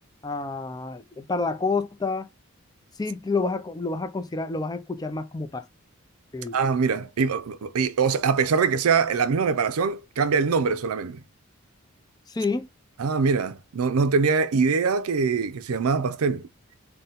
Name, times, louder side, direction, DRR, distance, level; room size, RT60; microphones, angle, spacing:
voice 1, 0.2-2.3 3.0-5.7 6.3-6.6 12.3-12.7, left 3 dB, 20° left, 0.4 m, -29 dB
voice 2, 6.5-11.2 13.0-16.5, right 5 dB, 85° right, 0.5 m, -23 dB
3.8 x 2.2 x 4.0 m
head